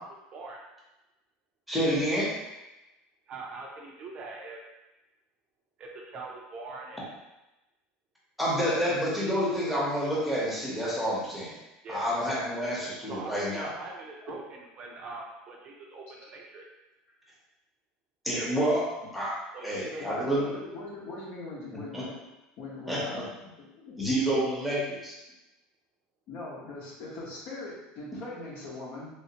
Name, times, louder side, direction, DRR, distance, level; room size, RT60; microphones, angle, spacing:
voice 1, 0.3-0.6 3.3-4.6 5.8-7.1 11.8-12.1 13.1-16.7 19.5-20.5, right 3 dB, 35° right, 0 dB, 0.5 m, -42 dB
voice 2, 1.7-2.4 8.4-11.6 11.9-13.7 18.2-20.6 21.9-22.0 22.9-23.2 24.0-25.1, equal, ahead, -6 dB, 0.9 m, -28 dB
voice 3, 20.0-22.1 22.6-23.3 23.5-24.0 26.3-29.1, left 2 dB, 55° left, -4 dB, 1.0 m, -41 dB
3.2 x 2.7 x 2.8 m, 1.0 s
cardioid pair, 145°, 3 cm